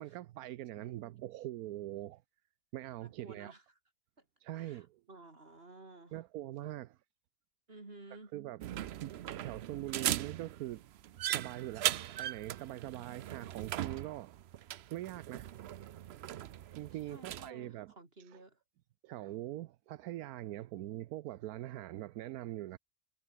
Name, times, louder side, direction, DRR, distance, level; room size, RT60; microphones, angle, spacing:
voice 1, 0.0-2.2 2.7-3.5 4.4-5.0 6.1-7.0 8.3-8.6 9.0-10.9 11.3-14.3 14.9-15.5 16.8-17.9 19.0-22.8, right 15 dB, 85° right, 1.1 m, -43 dB
voice 2, 3.0-3.6 4.2-4.3 4.5-6.2 7.7-8.3 16.9-18.6, right 2 dB, 40° right, 3.7 m, -54 dB
sound 1, 8.6-17.5, right 12 dB, 65° right, 0.7 m, -39 dB
omnidirectional pair, 1.5 m